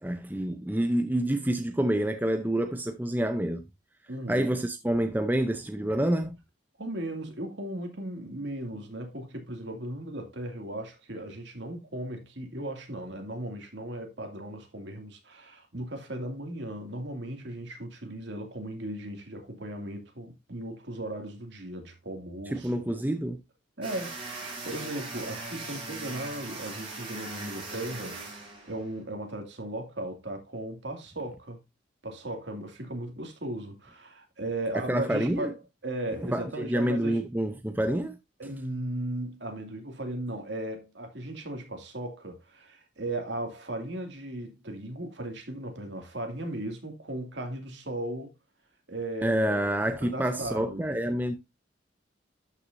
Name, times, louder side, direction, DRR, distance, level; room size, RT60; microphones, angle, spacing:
voice 1, 0.0-3.6 4.3-6.3 22.5-23.4 34.9-35.5 36.3-38.2 49.2-51.3, right 1 dB, 10° right, 0.7 m, -27 dB
voice 2, 4.1-4.5 6.8-22.7 23.8-31.6 32.0-35.6 35.8-37.2 38.4-48.3 48.9-49.4 50.0-50.9, right 1 dB, 65° right, 2.5 m, -37 dB
sound 1, 23.8-29.0, right 3 dB, 30° right, 5.1 m, -39 dB
12.5 x 6.0 x 2.7 m
head